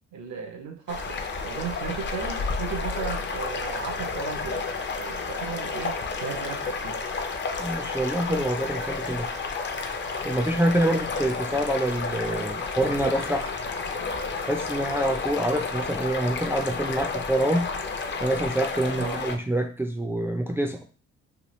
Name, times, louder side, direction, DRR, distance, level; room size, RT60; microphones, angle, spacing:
voice 1, 0.1-1.2 1.4-4.6 5.0-7.0 18.9-19.2, right 6 dB, 75° right, 5 dB, 0.7 m, -35 dB
sound 1, 0.9-19.4, left 4 dB, 40° left, 0.6 m, -31 dB
voice 2, 7.6-9.3 10.2-13.5 14.4-17.7 18.2-20.8, right 1 dB, 10° right, 4 dB, 0.4 m, -26 dB
3.0 x 2.3 x 3.0 m, 0.37 s
cardioid pair, 90°, 30 cm